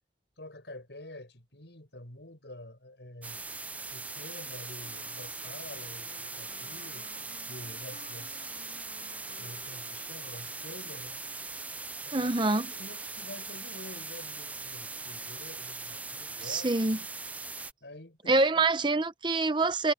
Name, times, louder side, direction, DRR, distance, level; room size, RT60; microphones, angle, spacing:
voice 1, 0.4-3.4 3.9-7.1 7.5-8.7 9.4-11.3 12.0-12.3 12.7-16.7 17.0-17.1 17.8-18.7, left 1 dB, 75° left, 5.5 m, -47 dB
sound 1, 3.2-17.7, right 3 dB, 10° right, 0.3 m, -40 dB
sound 2, 4.8-11.8, left 3 dB, 60° left, 6.6 m, -56 dB
voice 2, 12.1-12.7 16.4-17.0 18.3-19.9, right 3 dB, 25° right, 0.7 m, -26 dB
head